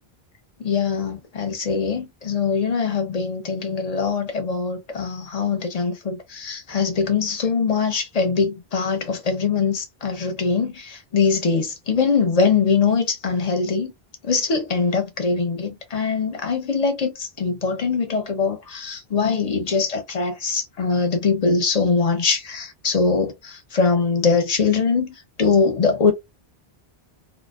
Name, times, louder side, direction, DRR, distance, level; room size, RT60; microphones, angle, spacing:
voice 1, 0.6-13.9 14.2-26.1, left 5 dB, 45° left, 0.7 m, -22 dB
2.4 x 2.2 x 2.3 m
omnidirectional pair, 1.1 m